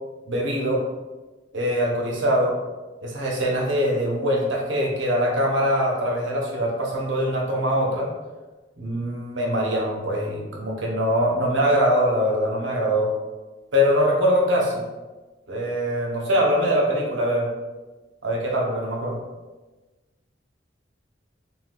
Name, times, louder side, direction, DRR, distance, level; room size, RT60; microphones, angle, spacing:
voice 1, 0.3-0.8 1.5-2.6 3.0-8.1 8.8-13.1 13.7-14.8 15.5-17.5 18.2-19.2, equal, 80° right, -2 dB, 0.7 m, -23 dB
3.6 x 2.3 x 2.5 m, 1.2 s
head